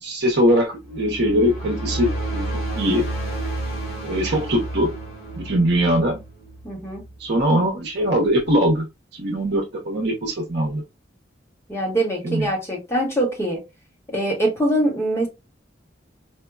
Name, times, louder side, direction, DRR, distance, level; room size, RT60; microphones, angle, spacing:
voice 1, 0.0-2.5 2.7-3.0 4.0-4.9 5.4-6.2 7.2-8.9 9.1-10.8 12.2-12.5, equal, 60° right, 0.8 m, -21 dB
sound 1, 0.8-7.4, right 2 dB, 50° left, 1.7 m, -31 dB
voice 2, 6.6-7.1 11.7-13.6 14.1-15.3, right 1 dB, 15° left, 1.1 m, -23 dB
4.4 x 2.1 x 2.2 m
head